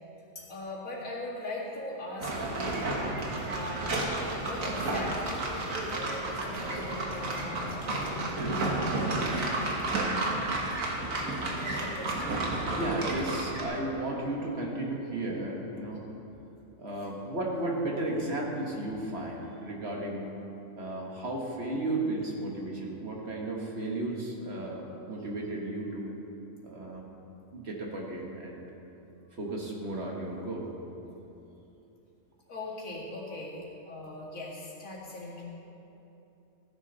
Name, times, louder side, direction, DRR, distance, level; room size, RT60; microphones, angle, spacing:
voice 1, 0.3-3.0 3.4-3.9 4.5-8.8 11.4-12.3 12.6-12.7 32.5-35.4, left 2 dB, 85° left, -6 dB, 2.7 m, -40 dB
sound 1, 2.2-13.6, right 2 dB, 85° right, 1.8 m, -31 dB
voice 2, 12.8-16.0 16.8-20.3 20.8-26.1 26.6-27.1 27.5-28.6 29.4-30.7, right 2 dB, 55° right, -1 dB, 1.7 m, -34 dB
14.5 x 10.0 x 4.0 m, 2.9 s
omnidirectional pair, 1.4 m